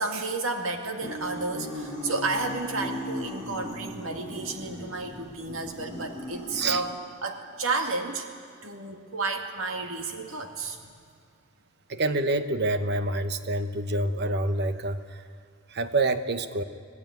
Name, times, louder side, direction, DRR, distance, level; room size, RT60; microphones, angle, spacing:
voice 1, 0.0-6.9 7.2-8.3 8.6-10.8, right 3 dB, 80° right, 4 dB, 2.2 m, -31 dB
sound 1, 1.0-6.8, left 1 dB, 15° right, 5.1 m, -37 dB
voice 2, 11.9-15.2 15.7-16.6, right 2 dB, 55° right, 10 dB, 1.1 m, -27 dB
25.5 x 17.0 x 9.3 m, 2.2 s
head